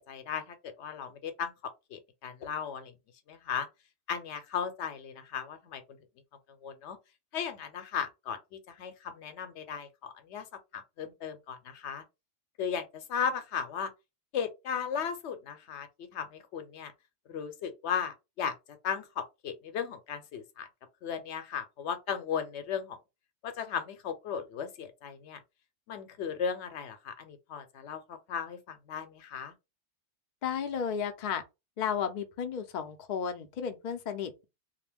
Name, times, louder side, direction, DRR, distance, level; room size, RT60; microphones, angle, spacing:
voice 1, 0.0-2.9 3.3-3.7 4.1-5.8 6.6-7.0 7.3-10.5 10.7-12.0 12.6-13.9 14.3-16.9 17.3-18.5 18.8-20.7 21.0-23.0 23.4-25.4 25.9-29.5, left 7 dB, 75° left, 0.9 m, -36 dB
voice 2, 30.4-31.4 31.8-34.5, left 7 dB, 55° left, 0.5 m, -33 dB
2.4 x 2.1 x 3.3 m
omnidirectional pair, 1.2 m